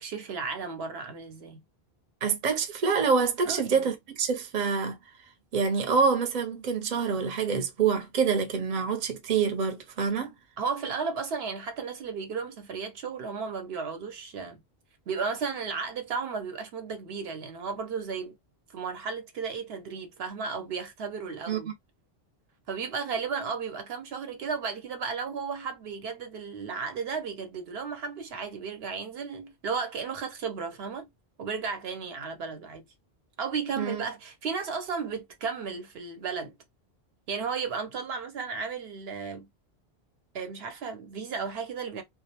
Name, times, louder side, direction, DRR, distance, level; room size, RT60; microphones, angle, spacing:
voice 1, 0.0-1.6 3.4-3.7 10.6-14.6 15.1-18.4 18.7-21.7 22.7-31.1 31.4-32.8 33.4-36.6 37.3-39.5 40.3-42.0, right 5 dB, 75° right, 0.9 m, -34 dB
voice 2, 2.2-5.0 5.5-10.3 21.5-21.6 33.8-34.0, right 5 dB, 50° right, 0.7 m, -26 dB
2.4 x 2.0 x 2.8 m
omnidirectional pair, 1.1 m